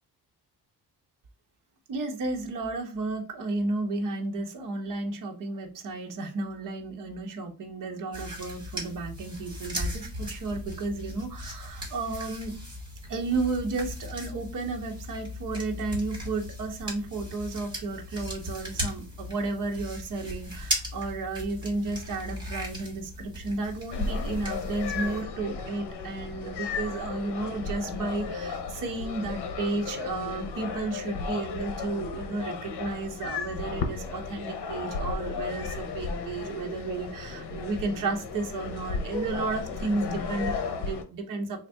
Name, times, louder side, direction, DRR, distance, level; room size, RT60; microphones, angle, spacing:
voice 1, 1.9-12.5 13.1-41.7, right 3 dB, 50° right, 3 dB, 1.0 m, -33 dB
sound 1, 8.1-25.2, equal, 10° right, 1.5 m, -38 dB
sound 2, 23.9-41.0, left 4 dB, 75° left, 0.8 m, -34 dB
3.5 x 2.4 x 4.3 m, 0.34 s
cardioid pair, 170°, 40 cm